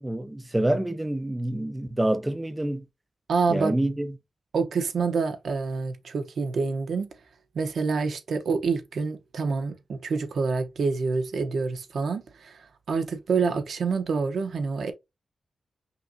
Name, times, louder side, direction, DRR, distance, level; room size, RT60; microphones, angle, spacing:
voice 1, 0.0-2.8 3.5-4.1, right 1 dB, 10° right, 0.4 m, -27 dB
voice 2, 3.3-3.8 4.5-7.1 7.5-14.9, right 4 dB, 80° right, 0.8 m, -27 dB
5.6 x 2.6 x 2.5 m
wide cardioid pair, 120°, 0 cm